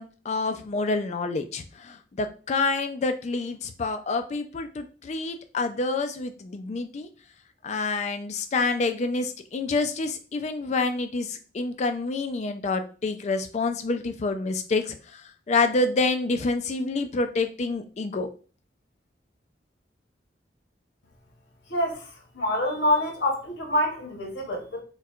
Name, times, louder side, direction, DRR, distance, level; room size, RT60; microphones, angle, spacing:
voice 1, 0.0-7.1 7.6-18.3, left 3 dB, 40° left, 7 dB, 0.4 m, -28 dB
voice 2, 21.7-22.1 22.3-24.8, left 1 dB, 85° left, 1 dB, 0.9 m, -26 dB
4.3 x 2.2 x 2.4 m, 0.37 s
head